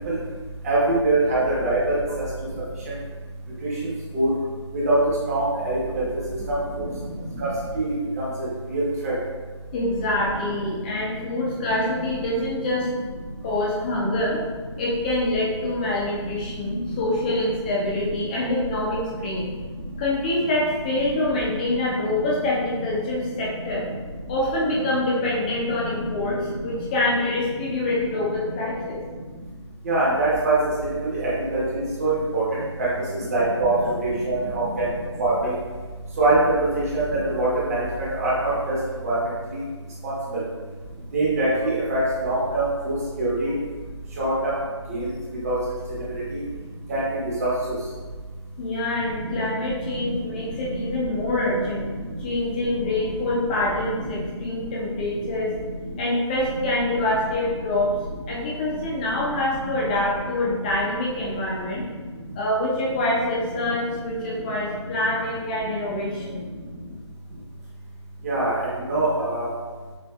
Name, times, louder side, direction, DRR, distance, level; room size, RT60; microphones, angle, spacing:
voice 1, 0.6-2.0 4.1-4.3 4.7-5.0 5.3-6.0 6.8-6.9 7.4-7.5 7.8-8.3 8.7-9.1 29.8-30.6 31.0-32.4 33.3-33.8 34.0-34.8 35.2-35.5 36.2-38.8 39.0-39.2 39.5-39.6 40.0-40.4 41.1-43.5 44.2-44.5 44.9-45.1 45.4-45.6 46.3-46.4 46.9-47.0 47.4-47.5 49.2-49.4 68.2-68.5 68.9-69.4, right 2 dB, 30° right, -8 dB, 1.2 m, -23 dB
voice 2, 9.7-12.9 13.4-14.4 14.8-19.5 20.0-23.9 24.3-29.0 48.6-51.9 52.2-55.5 56.0-57.9 58.3-61.8 62.3-66.5, left 1 dB, 15° left, -5 dB, 0.6 m, -25 dB
6.1 x 2.5 x 2.4 m, 1.4 s
figure-of-eight pair, 160°, 15 cm